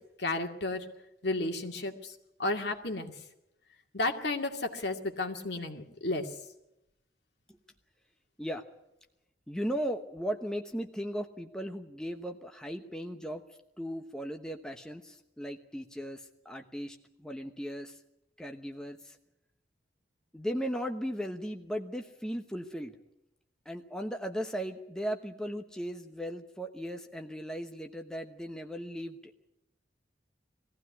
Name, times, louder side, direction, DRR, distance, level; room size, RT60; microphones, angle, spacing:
voice 1, 0.2-0.8 1.2-2.1 2.4-3.1 3.9-6.3, left 2 dB, 65° left, 3 dB, 2.3 m, -32 dB
voice 2, 9.5-13.4 13.8-18.0 18.4-19.2 20.3-23.0 23.6-29.3, equal, 5° left, 4 dB, 1.0 m, -37 dB
21.0 x 15.5 x 9.7 m, 0.87 s
head